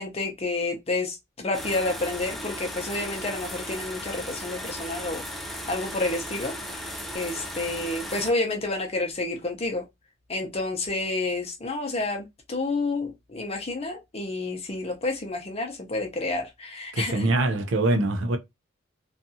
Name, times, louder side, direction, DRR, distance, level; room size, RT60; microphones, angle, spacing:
voice 1, 0.0-5.2 5.7-6.8 7.1-9.8 10.3-17.3, left 2 dB, 30° left, 0.7 m, -29 dB
sound 1, 1.5-8.3, equal, ahead, 0.4 m, -36 dB
voice 2, 16.9-18.4, right 2 dB, 80° right, 0.6 m, -23 dB
2.6 x 2.4 x 2.6 m
head